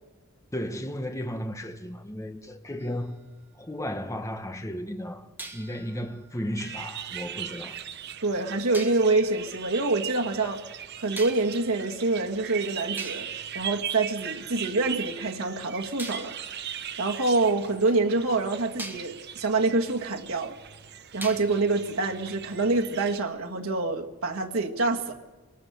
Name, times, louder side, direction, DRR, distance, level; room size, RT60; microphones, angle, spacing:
voice 1, 0.5-3.2 3.5-5.3 5.5-7.8, equal, 15° left, 1.2 m, -34 dB
sound 1, 2.8-4.2 5.4-7.5 8.7-9.1 11.2-11.7 12.5-12.6 13.0-14.6 16.0-18.2 18.8-19.2 21.2-21.8, right 2 dB, 10° right, 1.4 m, -44 dB
sound 2, 6.6-23.2, right 9 dB, 50° right, 0.9 m, -39 dB
voice 2, 8.2-10.6 11.0-13.3 13.5-16.3 17.0-20.6 21.1-25.1, right 3 dB, 90° right, 1.8 m, -26 dB
24.5 x 19.0 x 6.9 m
head